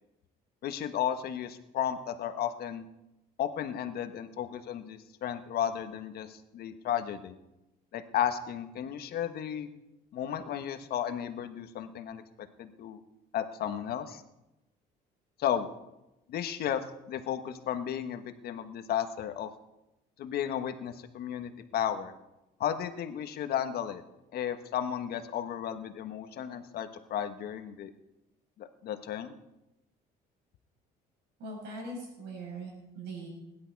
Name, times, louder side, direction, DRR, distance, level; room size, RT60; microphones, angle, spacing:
voice 1, 0.6-2.8 3.4-7.4 7.9-9.7 10.1-12.2 12.6-13.0 13.3-14.2 15.4-15.7 16.3-19.5 20.2-22.1 22.6-24.0 24.3-27.9 28.6-29.3, left 9 dB, 65° left, 8 dB, 1.3 m, -34 dB
voice 2, 31.4-33.3, right 2 dB, 80° right, 0 dB, 7.6 m, -41 dB
21.0 x 11.0 x 4.7 m, 0.94 s
cardioid pair, 110°, 17 cm